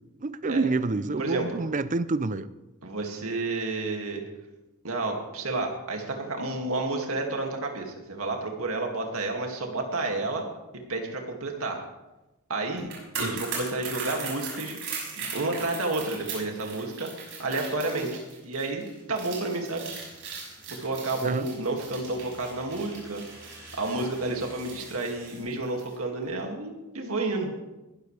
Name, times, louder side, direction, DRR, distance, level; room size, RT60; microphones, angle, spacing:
voice 1, 0.2-2.5 13.2-13.4 21.2-21.5, right 3 dB, 35° right, 14 dB, 0.5 m, -28 dB
voice 2, 1.2-1.6 2.8-4.2 4.8-10.4 10.9-11.8 12.5-12.9 13.2-14.8 15.1-17.1 17.4-19.9 20.8-23.2 23.8-27.5, right 2 dB, 80° right, 2 dB, 2.3 m, -30 dB
sound 1, 12.8-25.9 26.2-26.4, right 5 dB, 60° right, 6.3 m, -39 dB
sound 2, 19.5-25.4, right 1 dB, 15° right, 6.2 m, -51 dB
20.5 x 13.0 x 3.4 m, 1.0 s
head